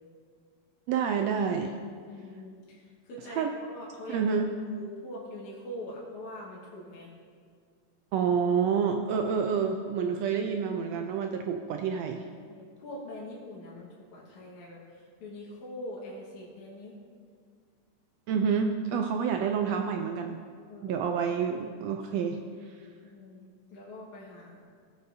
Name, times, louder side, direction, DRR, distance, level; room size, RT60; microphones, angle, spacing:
voice 1, 0.9-1.7 3.3-3.5 4.1-4.5 8.1-12.3 18.3-20.4 20.8-22.8, right 6 dB, 85° right, 4 dB, 1.5 m, -28 dB
voice 2, 2.1-4.4 4.6-7.1 12.5-17.0 19.0-19.1 20.7-21.1 23.0-24.6, left 1 dB, 75° left, -5 dB, 2.8 m, -43 dB
18.0 x 7.8 x 2.7 m, 2.1 s
omnidirectional pair, 3.5 m